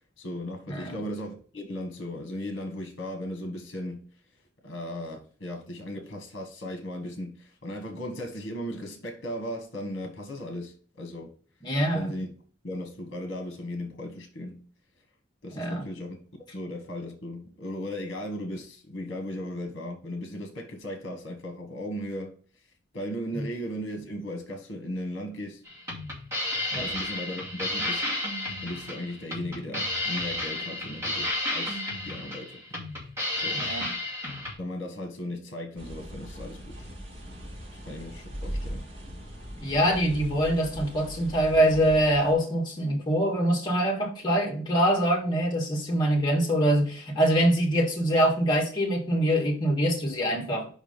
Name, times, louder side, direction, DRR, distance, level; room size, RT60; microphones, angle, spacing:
voice 1, 0.2-4.1 4.6-11.3 11.9-12.3 12.6-14.6 15.4-16.2 16.5-22.4 22.9-25.6 26.8-28.1 28.6-32.6 33.4-33.8 34.6-36.9 37.8-38.9, left 1 dB, 55° left, 1.3 m, -36 dB
voice 2, 11.6-12.1 15.5-15.8 23.3-23.5 26.7-26.9 33.5-33.8 39.6-50.7, equal, 20° left, 1.8 m, -24 dB
sound 1, 25.6-34.5, left 1 dB, 15° right, 2.4 m, -32 dB
sound 2, 35.8-42.3, equal, 65° right, 3.8 m, -39 dB
5.4 x 4.9 x 5.2 m
head